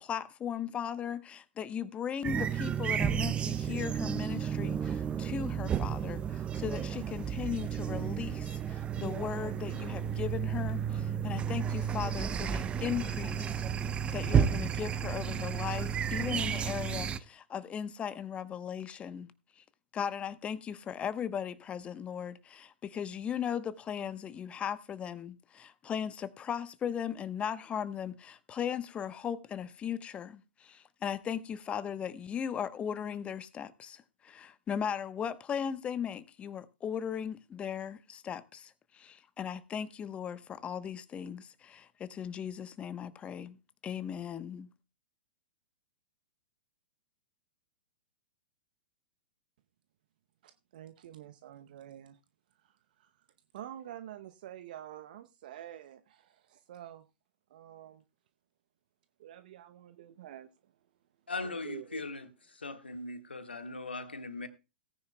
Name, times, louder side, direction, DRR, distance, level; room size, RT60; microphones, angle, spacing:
voice 1, 0.0-13.6 14.1-19.6 19.9-43.6 43.8-44.7, left 8 dB, 20° left, 0.9 m, -37 dB
sound 1, 2.2-17.2, right 8 dB, 20° right, 0.6 m, -32 dB
voice 2, 50.4-52.2 52.6-53.1 53.5-57.1 57.5-58.0 59.2-60.5 61.4-62.0, right 11 dB, 55° right, 0.7 m, -48 dB
voice 3, 61.3-64.5, left 3 dB, 85° left, 1.5 m, -40 dB
17.5 x 9.7 x 2.2 m
figure-of-eight pair, 110°, 6 cm